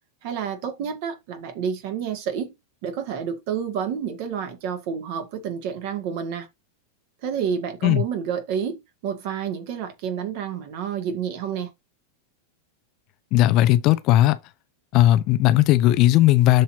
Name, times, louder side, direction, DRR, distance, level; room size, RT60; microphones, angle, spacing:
voice 1, 0.2-2.5 2.8-6.5 7.2-11.7, right 7 dB, 45° right, 2.1 m, -29 dB
voice 2, 13.3-14.4 14.9-16.6, left 14 dB, 40° left, 0.7 m, -17 dB
13.0 x 4.3 x 2.8 m
figure-of-eight pair, 90°, 0 cm